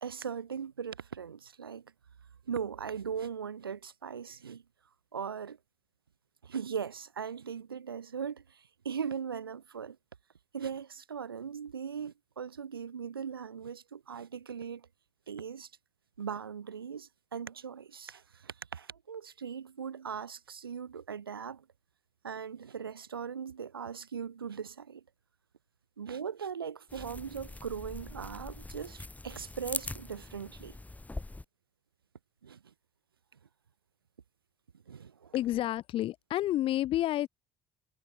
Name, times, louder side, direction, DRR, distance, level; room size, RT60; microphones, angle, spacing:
voice 1, 0.0-1.9 2.5-4.6 5.1-5.6 6.4-10.0 10.5-14.9 15.3-15.7 16.2-21.6 22.2-25.0 26.0-30.8 32.4-32.7 34.9-35.4, right 7 dB, 80° right, 2.7 m, -39 dB
sound 1, 26.9-31.4, left 2 dB, 15° left, 1.4 m, -42 dB
voice 2, 35.3-37.3, left 14 dB, 50° left, 0.8 m, -30 dB
figure-of-eight pair, 50°, 12 cm